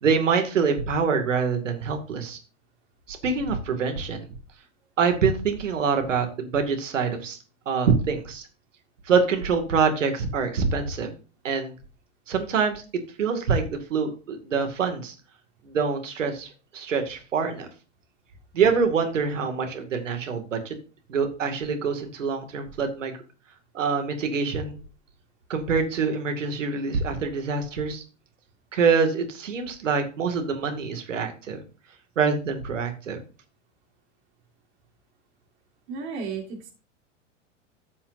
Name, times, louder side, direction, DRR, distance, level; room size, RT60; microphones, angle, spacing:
voice 1, 0.0-2.4 3.1-4.3 5.0-7.4 7.7-8.5 9.1-11.1 11.4-11.7 12.3-12.8 13.2-15.1 15.6-17.7 18.5-20.8 21.1-23.1 23.7-24.8 25.5-28.0 28.7-31.6 32.2-33.2, right 5 dB, 80° right, 6 dB, 2.4 m, -25 dB
voice 2, 35.9-36.7, right 5 dB, 60° right, 0 dB, 3.6 m, -33 dB
13.5 x 7.1 x 2.7 m, 0.34 s
hypercardioid pair, 105°, 37 cm